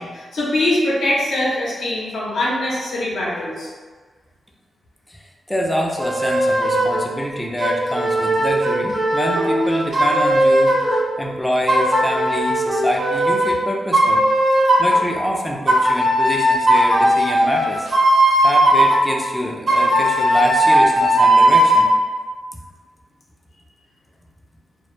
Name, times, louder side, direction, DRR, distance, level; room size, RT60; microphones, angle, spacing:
voice 1, 0.0-3.7, left 1 dB, 85° left, -6 dB, 0.6 m, -22 dB
voice 2, 5.1-14.2 14.8-17.9 18.4-21.9, equal, 10° left, 0 dB, 0.4 m, -26 dB
sound 1, 6.0-7.0 7.6-11.0 11.7-13.5 13.9-15.0 15.7-19.0 19.7-21.9, right 1 dB, 60° right, 0.6 m, -17 dB
2.1 x 2.0 x 3.0 m, 1.5 s
cardioid pair, 80°, 0 cm